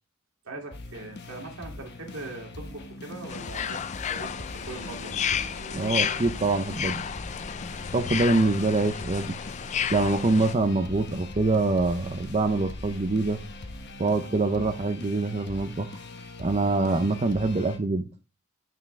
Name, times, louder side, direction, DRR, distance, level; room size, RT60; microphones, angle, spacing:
voice 1, 0.4-5.2, right 2 dB, 90° right, 2.5 m, -41 dB
sound 1, 0.7-17.8, left 2 dB, 55° left, 1.1 m, -42 dB
sound 2, 3.3-10.5, left 8 dB, 35° left, 0.4 m, -32 dB
sound 3, 3.5-14.1, equal, 70° right, 2.1 m, -45 dB
voice 2, 5.7-7.0 7.9-9.3 9.9-13.4 14.0-15.9 16.4-18.1, right 3 dB, 30° right, 0.6 m, -25 dB
9.1 x 5.9 x 3.3 m
head